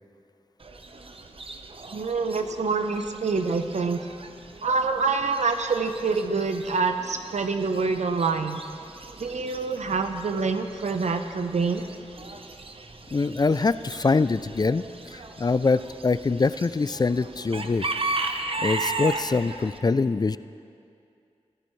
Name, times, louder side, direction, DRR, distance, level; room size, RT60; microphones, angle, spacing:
Chicken rooster / Bird, 0.6-19.8, right 3 dB, 50° right, 0.9 m, -37 dB
voice 1, 1.9-4.1 4.6-8.6 9.2-11.8, right 4 dB, 85° right, 7 dB, 0.8 m, -26 dB
voice 2, 13.1-17.9 18.6-20.4, left 4 dB, 35° left, 15 dB, 0.4 m, -24 dB
24.5 x 11.0 x 3.2 m, 2.4 s
cardioid pair, 50°, 12 cm